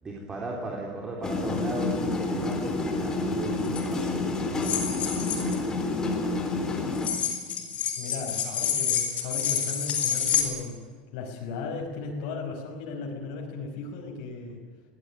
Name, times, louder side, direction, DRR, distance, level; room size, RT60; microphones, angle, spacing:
voice 1, 0.0-4.8 5.3-6.3, right 2 dB, 15° right, -1 dB, 3.7 m, -37 dB
sound 1, 1.2-7.1, left 2 dB, 15° left, 3.5 m, -29 dB
sound 2, 3.6-3.8 4.6-5.6 6.9-10.4, left 8 dB, 35° left, 6.8 m, -28 dB
voice 2, 8.0-10.8 11.1-14.6, left 4 dB, 65° left, -1 dB, 5.3 m, -36 dB
22.5 x 18.5 x 9.9 m, 1.5 s
cardioid pair, 165°, 4 cm